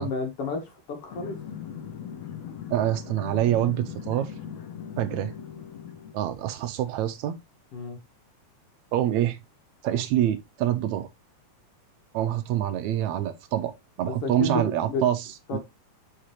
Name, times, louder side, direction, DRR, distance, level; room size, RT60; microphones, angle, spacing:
voice 1, 0.0-1.4 7.7-8.0 14.1-15.0 15.5-15.6, left 3 dB, 55° left, 2.3 m, -31 dB
sound 1, 1.1-6.1, left 8 dB, 70° left, 1.8 m, -39 dB
voice 2, 2.7-4.3 5.0-5.3 6.1-7.4 8.9-9.4 9.8-11.1 12.1-13.7 14.0-15.6, right 12 dB, 80° right, 1.9 m, -26 dB
6.5 x 5.0 x 3.1 m
omnidirectional pair, 3.4 m